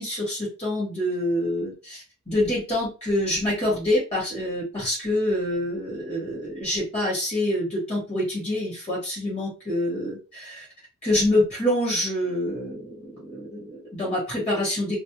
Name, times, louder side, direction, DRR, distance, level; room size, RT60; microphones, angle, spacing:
voice 1, 0.0-10.7 11.0-15.0, left 1 dB, 30° left, -5 dB, 1.1 m, -26 dB
2.3 x 2.0 x 2.8 m, 0.32 s
head